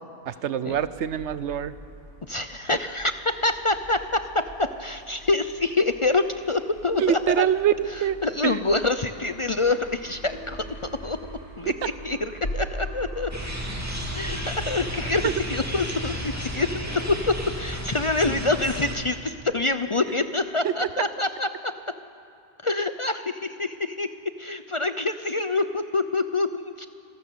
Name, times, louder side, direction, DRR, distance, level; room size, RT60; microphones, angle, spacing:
voice 1, 0.3-1.7 7.0-8.2 8.4-8.6 15.2-15.3 20.6-20.7, right 9 dB, 80° right, 14 dB, 1.0 m, -24 dB
sound 1, 0.7-15.6, right 1 dB, 80° left, 6.9 m, -41 dB
voice 2, 2.3-7.5 7.9-10.6 11.0-11.2 11.6-13.3 14.1-15.2 15.5-21.7 22.6-24.1 24.4-26.9, left 3 dB, 35° left, 9 dB, 0.5 m, -26 dB
sound 2, 13.3-19.0, equal, 15° right, 2.3 m, -32 dB
26.0 x 16.5 x 6.9 m, 2.7 s
omnidirectional pair, 1.2 m